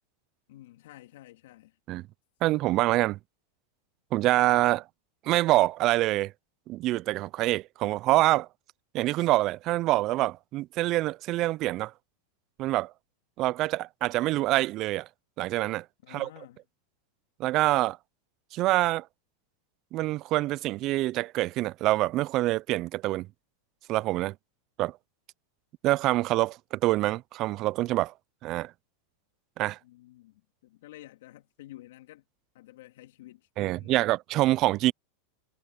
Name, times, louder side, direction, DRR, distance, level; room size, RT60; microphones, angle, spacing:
voice 1, 0.5-1.8 16.0-16.6 29.8-32.2 32.5-34.0, left 15 dB, 75° left, 2.2 m, -50 dB
voice 2, 2.4-3.2 4.1-4.8 5.2-6.3 6.7-8.5 8.9-11.9 12.6-12.9 13.4-15.1 15.4-16.3 17.4-18.0 18.5-19.1 19.9-23.3 23.9-24.3 24.8-25.0 25.8-28.1 28.4-28.7 29.6-29.8 33.6-34.9, right 17 dB, 45° right, 0.4 m, -26 dB
hypercardioid pair, 115°, 0 cm